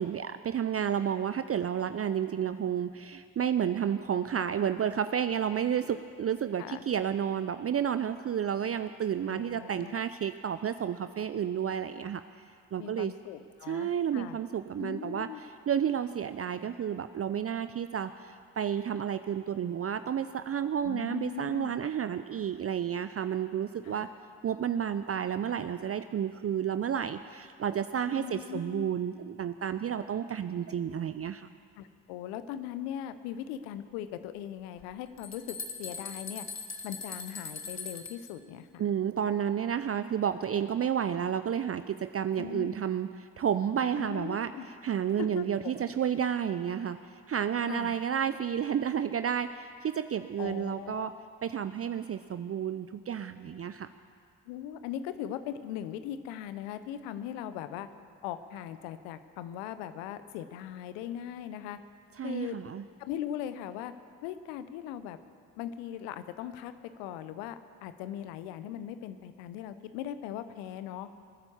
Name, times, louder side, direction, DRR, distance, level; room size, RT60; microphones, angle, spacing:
voice 1, 0.0-12.2 12.7-13.1 13.7-24.1 24.4-31.5 38.8-44.5 44.8-47.0 47.3-51.1 51.4-53.9 62.2-62.8, right 8 dB, 35° right, 11 dB, 0.6 m, -31 dB
voice 2, 9.3-10.0 12.8-14.4 14.8-15.4 20.8-21.7 23.8-24.1 28.2-28.9 31.8-36.5 36.8-38.8 42.4-42.8 43.9-44.7 45.2-45.7 47.7-47.9 50.4-51.3 54.5-57.9 58.2-61.8 62.2-62.6 63.0-63.9 64.2-65.2 65.6-66.7 67.0-71.1, left 10 dB, 75° left, 12 dB, 0.9 m, -39 dB
sound 1, 34.8-34.9 35.2-38.3, left 4 dB, 40° left, 2.0 m, -40 dB
20.0 x 9.7 x 7.1 m, 2.2 s
hypercardioid pair, 40°, 42 cm